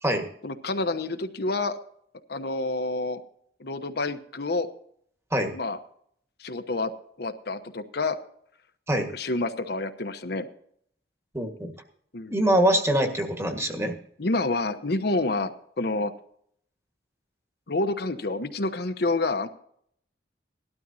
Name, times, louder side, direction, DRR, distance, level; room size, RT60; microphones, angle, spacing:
voice 1, 0.4-1.8 2.3-3.2 3.6-4.7 5.5-5.8 6.4-6.9 7.2-8.2 9.1-10.5 12.1-12.4 14.2-15.5 15.8-16.1 17.7-19.5, left 2 dB, 65° left, 8 dB, 1.0 m, -28 dB
voice 2, 11.3-11.7 12.3-13.9, right 1 dB, 15° right, 4 dB, 1.6 m, -24 dB
18.5 x 12.5 x 2.8 m, 0.64 s
head